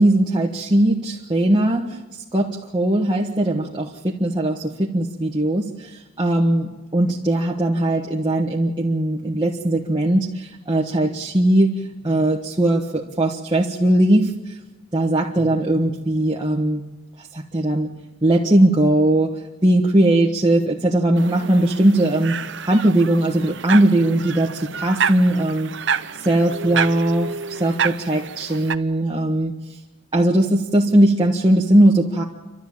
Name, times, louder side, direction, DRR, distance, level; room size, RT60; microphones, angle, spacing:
voice 1, 0.0-14.6 14.9-16.8 17.3-17.9 18.2-25.7 26.2-29.8 30.1-32.2, right 1 dB, 20° right, -2 dB, 1.5 m, -19 dB
sound 1, 21.2-28.7, right 6 dB, 60° right, 0.7 m, -28 dB
30.0 x 12.5 x 8.7 m, 1.1 s
head